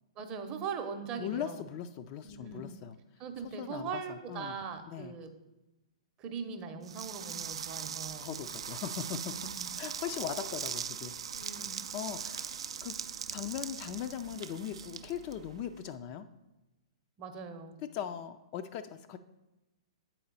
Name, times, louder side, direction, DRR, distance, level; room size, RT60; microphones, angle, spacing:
voice 1, 0.2-1.6 2.2-2.8 3.2-5.3 6.2-8.3 9.3-9.7 11.3-11.9 17.2-17.8, right 6 dB, 30° right, 6 dB, 0.7 m, -41 dB
voice 2, 1.2-3.0 3.6-4.6 4.9-5.1 8.2-9.3 9.8-11.2 11.9-12.5 12.8-13.0 13.3-16.3 17.9-19.2, left 9 dB, 35° left, 9 dB, 0.3 m, -39 dB
sound 1, 6.8-15.8, right 7 dB, 65° right, 0.3 m, -40 dB
7.8 x 4.4 x 3.9 m, 1.0 s
figure-of-eight pair, 115°, 3 cm